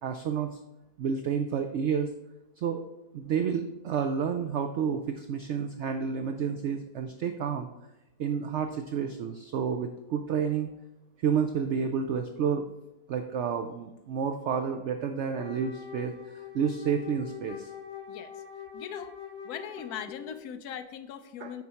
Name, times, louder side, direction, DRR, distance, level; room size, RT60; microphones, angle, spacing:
voice 1, 0.0-0.6 1.0-2.1 2.6-2.8 3.1-7.7 8.2-10.7 11.2-12.6 13.1-17.7 21.4-21.6, right 7 dB, 75° right, 6 dB, 0.6 m, -30 dB
Wind instrument woodwind instrument, 15.3-20.5, left 8 dB, 45° left, 0.9 m, -43 dB
voice 2, 18.7-19.2 19.4-21.6, left 8 dB, 75° left, 11 dB, 1.1 m, -40 dB
6.4 x 4.1 x 5.6 m, 0.98 s
omnidirectional pair, 1.7 m